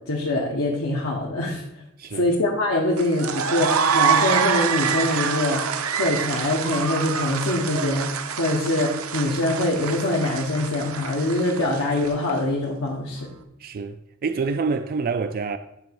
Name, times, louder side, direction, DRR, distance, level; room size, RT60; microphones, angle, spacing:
voice 1, 0.1-1.6 2.1-13.3, left 1 dB, 80° left, 1.4 m, -24 dB
voice 2, 2.0-2.3 13.6-15.6, right 4 dB, 45° right, 0.4 m, -27 dB
sound 1, 3.0-12.3, right 6 dB, 70° right, 0.7 m, -26 dB
10.5 x 3.5 x 7.0 m
head